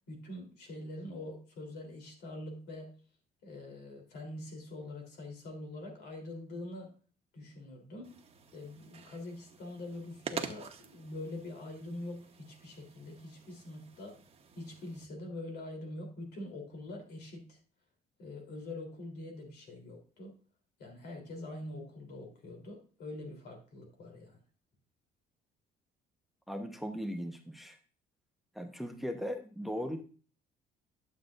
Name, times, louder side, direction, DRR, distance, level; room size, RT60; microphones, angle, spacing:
voice 1, 0.1-3.0 3.4-6.9 7.3-8.1 8.5-14.2 14.6-17.6 18.2-20.3 20.8-24.4, left 1 dB, 75° left, 2 dB, 3.5 m, -44 dB
sound 1, 8.0-15.0, right 6 dB, 35° right, 1.1 m, -47 dB
voice 2, 26.5-27.8 28.5-30.0, equal, ahead, 6 dB, 0.9 m, -38 dB
12.0 x 7.6 x 2.6 m, 0.38 s
cardioid pair, 110°, 17 cm